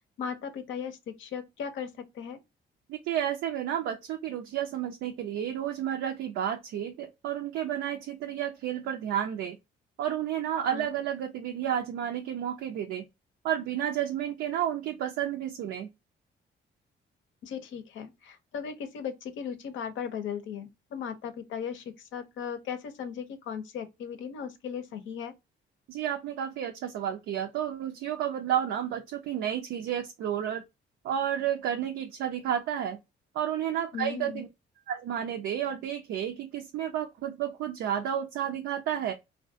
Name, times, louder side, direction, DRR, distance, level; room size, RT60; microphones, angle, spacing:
voice 1, 0.2-2.4 10.7-10.9 17.4-25.3 33.9-34.4, left 7 dB, 75° left, 0.6 m, -37 dB
voice 2, 2.9-9.6 10.0-13.1 13.4-15.9 25.9-30.6 31.0-33.0 33.3-34.5 34.9-39.1, right 10 dB, 80° right, 0.4 m, -31 dB
2.3 x 2.1 x 2.6 m
cardioid pair, 90°, 20 cm